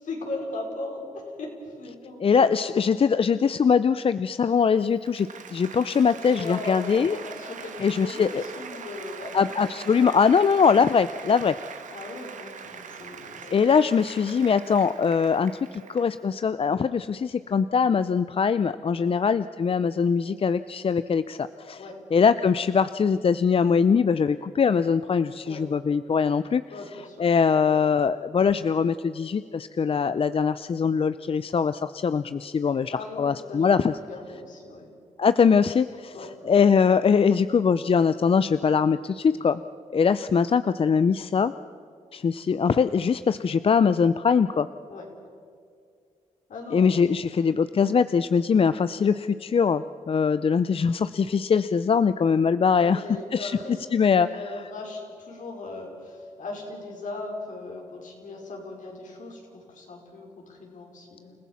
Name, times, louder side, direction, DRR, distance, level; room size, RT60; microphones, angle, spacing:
voice 1, 0.0-2.8 5.8-5.9 6.1-10.2 11.9-13.5 18.9-19.1 21.8-21.9 25.4-25.6 26.7-27.3 32.9-34.9 36.1-36.3 44.9-45.1 46.5-46.8 47.2-47.5 52.8-61.3, left 2 dB, 75° left, 1 dB, 4.8 m, -38 dB
voice 2, 2.2-7.2 7.8-8.4 9.3-11.6 13.4-21.8 22.1-26.6 27.2-33.9 35.2-36.1 36.4-39.6 39.9-41.5 42.1-44.7 46.7-53.0 53.3-53.6 53.9-54.3, left 6 dB, 45° left, 13 dB, 0.6 m, -22 dB
Applause, 4.7-16.2, right 6 dB, 75° right, 1.7 m, -42 dB
29.0 x 15.5 x 7.2 m, 2.3 s
cardioid pair, 60°, 13 cm